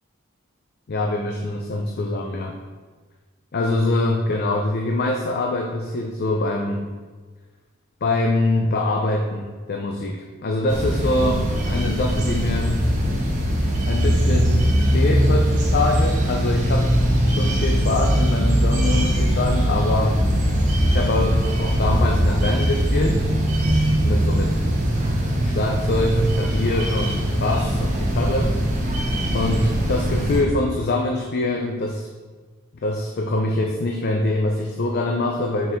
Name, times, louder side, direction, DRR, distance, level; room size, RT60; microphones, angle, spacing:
voice 1, 0.9-2.6 3.5-7.0 8.0-12.8 13.8-16.9 17.3-20.2 20.8-23.2 24.0-24.6 25.4-28.5 29.3-32.1 32.8-35.8, left 2 dB, 50° left, 1 dB, 0.5 m, -24 dB
sound 1, 10.7-30.4, equal, 40° right, 1.1 m, -21 dB
6.1 x 4.6 x 3.5 m, 1.4 s
head